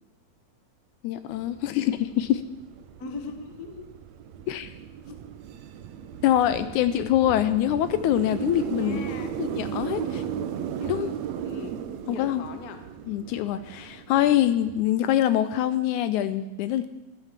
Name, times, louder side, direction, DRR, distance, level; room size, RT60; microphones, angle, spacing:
voice 1, 1.0-2.4 4.5-4.7 6.2-9.0 9.4-10.2 10.9-11.1 12.1-12.4 13.1-16.9, left 12 dB, 80° left, 12 dB, 1.9 m, -24 dB
sound 1, 1.3-14.8, right 8 dB, 70° right, 1.8 m, -36 dB
voice 2, 3.0-3.8 8.6-9.3 10.8-11.1 11.4-11.7 12.0-12.8, left 4 dB, 45° left, 7 dB, 1.2 m, -40 dB
12.0 x 11.5 x 7.3 m, 0.96 s
omnidirectional pair, 3.7 m